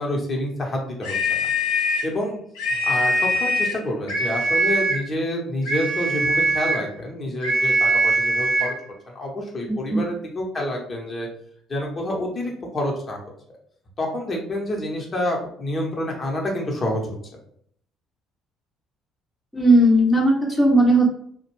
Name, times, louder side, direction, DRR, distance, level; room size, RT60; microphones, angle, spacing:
voice 1, 0.0-1.5 2.0-2.4 2.7-8.7 9.1-11.3 11.7-13.2 14.0-17.2, left 1 dB, 35° left, 0 dB, 0.8 m, -28 dB
sound 1, 1.0-2.1 2.6-3.8 4.1-5.1 5.7-6.9 7.4-8.8, right 1 dB, 65° left, 0.6 m, -22 dB
voice 2, 19.5-21.1, right 1 dB, 5° left, -2 dB, 0.6 m, -16 dB
2.4 x 2.1 x 3.1 m, 0.63 s
figure-of-eight pair, 50°, 0 cm